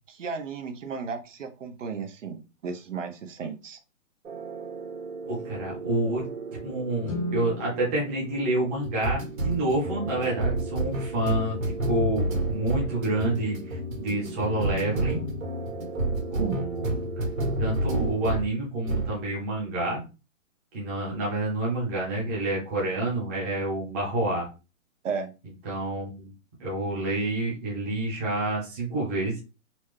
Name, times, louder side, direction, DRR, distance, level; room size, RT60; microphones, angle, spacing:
voice 1, 0.1-3.8 16.3-16.6 25.0-25.3, right 5 dB, 65° right, 6 dB, 0.8 m, -34 dB
sound 1, 4.2-18.5 18.8-19.2, right 2 dB, 80° right, 1.8 m, -31 dB
voice 2, 5.3-6.3 6.6-15.2 16.3-17.2 17.6-20.0 20.7-24.5 25.6-26.3 26.6-29.4, right 1 dB, 10° right, -5 dB, 0.8 m, -28 dB
Guitar, 7.0-9.6, equal, 25° left, 0.8 m, -37 dB
4.1 x 2.3 x 3.2 m, 0.30 s
hypercardioid pair, 170°, 40 cm